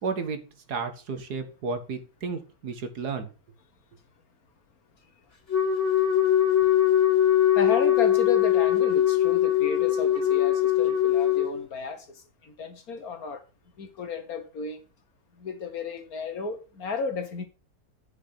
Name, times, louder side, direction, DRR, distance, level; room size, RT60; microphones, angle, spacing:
voice 1, 0.0-3.3, right 4 dB, 80° right, 2.0 m, -33 dB
Wind instrument woodwind instrument, 5.5-11.6, left 11 dB, 45° left, 2.7 m, -21 dB
voice 2, 7.5-12.1 12.4-13.4 13.8-14.8 15.4-17.4, left 4 dB, 65° left, 1.9 m, -33 dB
8.9 x 6.0 x 5.8 m
omnidirectional pair, 1.7 m